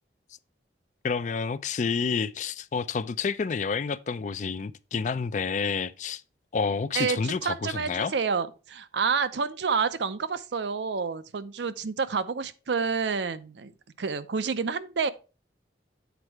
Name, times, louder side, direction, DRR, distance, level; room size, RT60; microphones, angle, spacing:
voice 1, 1.0-6.2 6.5-8.1, left 5 dB, 45° left, 0.3 m, -29 dB
voice 2, 6.9-13.7 14.0-15.1, right 5 dB, 75° right, 0.5 m, -29 dB
8.1 x 4.3 x 4.6 m
head